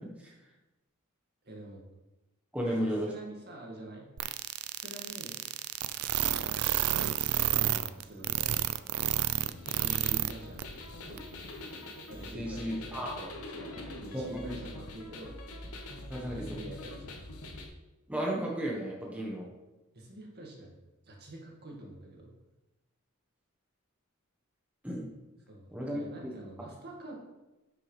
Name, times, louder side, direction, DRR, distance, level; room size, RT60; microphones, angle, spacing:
voice 1, 1.4-1.8 2.8-4.1 4.6-5.4 7.3-8.7 9.8-11.2 12.1-15.3 16.3-17.2 19.9-20.7 21.0-22.3 25.5-27.1, right 1 dB, 50° right, -1 dB, 1.9 m, -46 dB
voice 2, 2.5-3.1 12.3-13.2 14.1-14.5 16.1-16.6 18.1-19.5 24.8-25.1 25.7-26.0, equal, 5° right, -3 dB, 1.2 m, -33 dB
sound 1, 4.2-10.3 10.6-10.7 11.2-11.3, right 12 dB, 80° right, 0.4 m, -29 dB
sound 2, 9.4-17.7, left 2 dB, 85° left, 1.3 m, -44 dB
9.9 x 6.2 x 3.3 m, 1.0 s
head